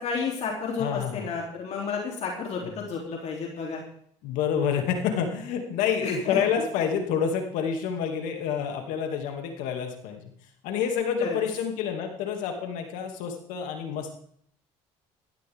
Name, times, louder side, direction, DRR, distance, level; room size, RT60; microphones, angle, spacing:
voice 1, 0.0-3.8 6.0-6.4 11.2-11.3, left 5 dB, 55° left, -1 dB, 3.4 m, -31 dB
voice 2, 0.8-1.3 2.6-2.7 4.2-10.3 10.6-14.2, left 7 dB, 80° left, 4 dB, 2.7 m, -28 dB
15.5 x 14.0 x 3.7 m, 0.64 s
supercardioid pair, 80°, 13 cm